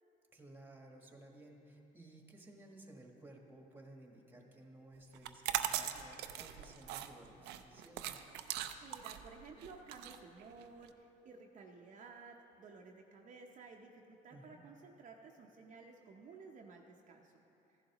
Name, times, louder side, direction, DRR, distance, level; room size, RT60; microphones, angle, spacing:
voice 1, 0.3-8.2 14.3-14.6, right 1 dB, 10° right, 1 dB, 1.3 m, -57 dB
sound 1, 5.1-10.9, right 11 dB, 90° right, 0.5 m, -40 dB
voice 2, 8.4-17.3, right 4 dB, 45° right, 1 dB, 0.7 m, -55 dB
15.0 x 11.0 x 3.0 m, 2.9 s
cardioid pair, 110°, 17 cm